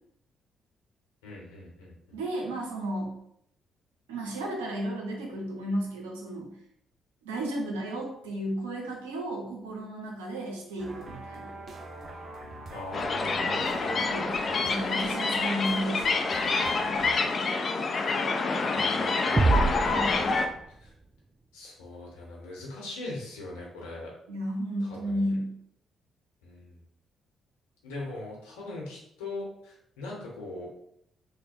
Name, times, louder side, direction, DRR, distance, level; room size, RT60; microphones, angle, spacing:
voice 1, 1.2-2.2 12.7-14.0 18.7-20.3 20.7-20.9 21.5-24.1 24.8-25.3 26.4-26.8 27.8-30.7, left 2 dB, 80° left, -3 dB, 1.1 m, -41 dB
voice 2, 2.1-3.1 4.1-6.5 7.2-11.5 14.1-14.4 14.6-16.2 16.4-16.7 19.9-20.2 24.3-25.5, right 1 dB, 85° right, 0 dB, 0.7 m, -33 dB
sound 1, 10.8-17.2, right 2 dB, 50° right, 0.8 m, -43 dB
sound 2, 12.9-20.5, left 4 dB, 45° left, 0.5 m, -27 dB
sound 3, 19.4-21.1, right 3 dB, 30° right, 0.4 m, -26 dB
3.4 x 2.2 x 4.3 m, 0.72 s
hypercardioid pair, 45°, 0 cm